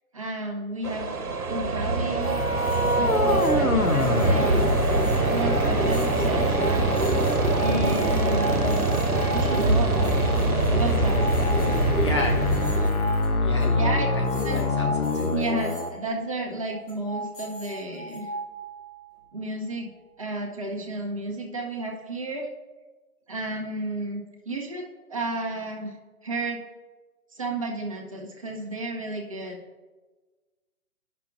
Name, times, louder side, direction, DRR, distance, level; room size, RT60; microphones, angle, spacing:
voice 1, 0.1-1.1 1.5-2.4 3.0-4.9 5.3-6.9 7.6-9.0 9.3-10.3 10.7-11.7 13.8-14.1 14.4-14.6 15.3-18.3 19.3-22.5 23.3-26.0 26.2-26.6 27.3-29.6, right 2 dB, 25° right, 1 dB, 0.6 m, -32 dB
sound 1, 0.8-12.9, right 3 dB, 80° right, 0.9 m, -24 dB
sound 2, 2.0-15.9, left 3 dB, 80° left, 0.8 m, -27 dB
sound 3, 2.2-15.9 16.7-19.3, equal, 35° left, 2.0 m, -36 dB
voice 2, 12.0-12.7 13.4-15.4, equal, 20° left, 0 dB, 0.6 m, -32 dB
11.5 x 5.7 x 2.5 m, 1.3 s
figure-of-eight pair, 145°, 44 cm